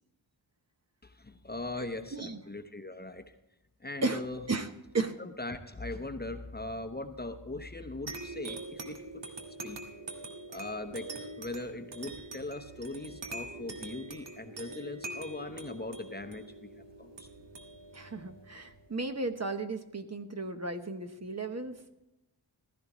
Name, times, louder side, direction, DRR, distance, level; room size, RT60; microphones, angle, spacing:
voice 1, 1.0-3.3 3.8-4.4 5.2-9.2 9.6-9.8 10.5-17.3, left 2 dB, 20° left, 6 dB, 0.8 m, -40 dB
sound 1, 8.1-19.1, right 2 dB, 70° right, 1.6 m, -44 dB
voice 2, 17.9-21.8, right 3 dB, 35° right, 6 dB, 0.9 m, -34 dB
15.5 x 14.0 x 3.1 m, 0.93 s
wide cardioid pair, 105°, 45 cm